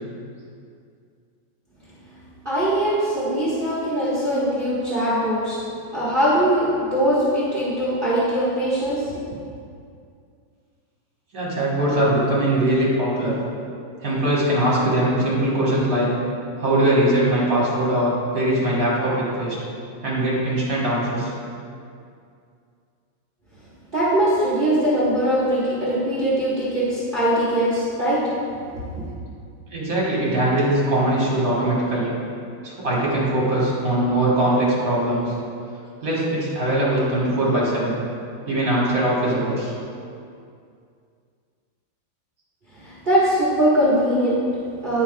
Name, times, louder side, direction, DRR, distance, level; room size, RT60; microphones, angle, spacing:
voice 1, 1.8-9.4 23.9-28.5 29.0-29.1 42.7-45.0, right 1 dB, 30° right, -10 dB, 1.3 m, -22 dB
voice 2, 11.3-13.4 14.0-16.1 16.6-19.6 20.0-21.3 29.7-32.1 32.6-35.3 36.0-37.9 38.5-39.7, right 1 dB, 50° right, -6 dB, 1.7 m, -21 dB
10.5 x 5.6 x 2.2 m, 2.4 s
omnidirectional pair, 2.0 m